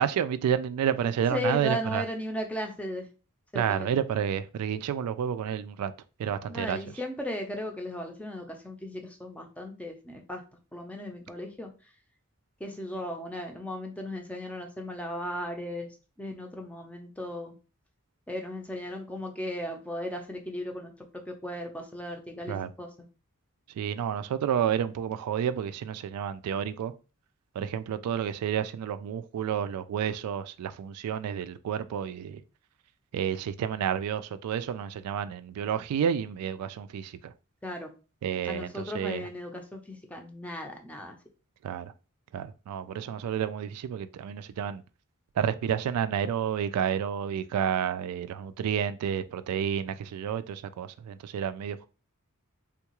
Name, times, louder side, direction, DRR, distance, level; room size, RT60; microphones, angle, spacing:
voice 1, 0.0-2.0 3.5-5.9 6.2-6.8 22.5-22.7 23.8-26.9 27.6-32.4 33.1-37.1 38.2-39.3 41.6-41.9 42.3-44.8 45.4-51.9, right 8 dB, 90° right, 0.3 m, -30 dB
voice 2, 1.3-3.1 3.5-3.9 6.5-10.4 10.7-11.7 12.6-15.9 16.2-17.5 18.3-20.9 21.3-22.9 37.6-37.9 38.4-41.2, left 1 dB, 5° left, 0.5 m, -36 dB
3.6 x 2.3 x 2.9 m
head